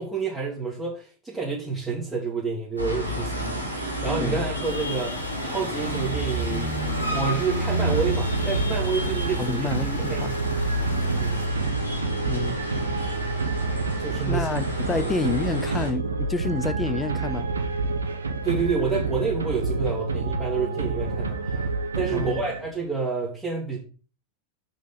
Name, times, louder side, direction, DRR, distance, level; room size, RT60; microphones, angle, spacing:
voice 1, 0.0-3.6 4.0-5.1 5.4-6.7 7.1-9.7 10.1-10.4 11.2-11.4 14.0-14.5 18.4-21.7 21.9-23.8, right 5 dB, 15° right, 2.2 m, -29 dB
sound 1, 2.8-15.9, equal, 90° right, 1.7 m, -30 dB
sound 2, 4.6-11.5, left 3 dB, 70° left, 1.2 m, -41 dB
sound 3, 7.8-22.9, right 3 dB, 75° right, 0.9 m, -28 dB
voice 2, 9.4-10.4 12.3-12.6 14.3-17.5 22.1-22.4, left 3 dB, 15° left, 0.6 m, -29 dB
6.5 x 5.1 x 5.5 m
figure-of-eight pair, 90°, 0 cm